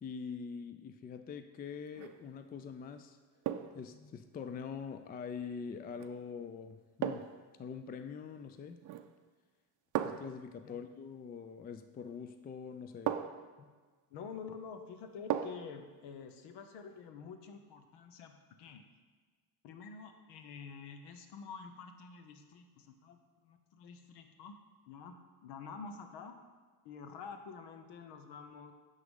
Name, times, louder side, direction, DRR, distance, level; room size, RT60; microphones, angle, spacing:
voice 1, 0.0-3.2 3.7-7.3 7.6-8.8 10.0-13.1 13.6-13.7, left 6 dB, 25° left, 9 dB, 0.4 m, -44 dB
sound 1, 1.9-2.2 3.4-3.9 6.0-6.2 7.0-7.5 8.8-9.2 9.9-10.4 12.1-12.2 13.1-13.5 15.3-15.7 16.1-16.2, right 10 dB, 45° right, 0.5 m, -37 dB
voice 2, 14.1-18.8 19.6-24.6 24.9-26.4 26.8-28.7, left 5 dB, 75° left, 7 dB, 1.0 m, -48 dB
9.5 x 3.8 x 5.3 m, 1.4 s
cardioid pair, 95°, 42 cm